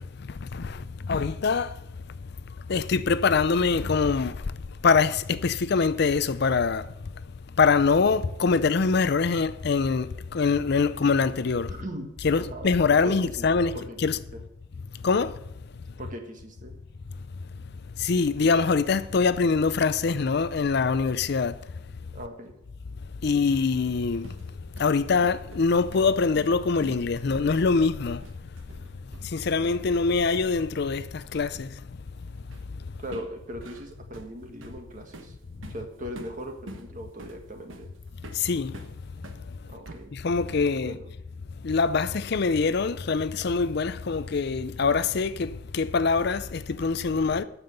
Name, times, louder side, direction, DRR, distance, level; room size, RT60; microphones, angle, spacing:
voice 1, 0.4-1.7 2.7-4.3 4.8-6.8 7.6-10.1 10.3-11.7 12.2-13.7 14.0-14.2 15.0-15.3 18.0-21.5 23.2-24.3 24.8-28.2 29.3-31.7 38.3-38.7 40.1-41.0 41.6-47.4, left 4 dB, 55° left, 0.5 m, -24 dB
voice 2, 11.7-12.1 12.5-13.5 13.7-14.4 16.0-16.8 22.1-22.5 33.0-35.4 35.7-37.9 39.6-40.1 40.7-41.1, equal, 40° right, 1.7 m, -39 dB
sound 1, 23.9-30.1 30.3-30.6 32.5-32.8 33.1-39.4 39.8-40.8, right 2 dB, 70° right, 1.2 m, -46 dB
9.3 x 7.1 x 8.1 m
head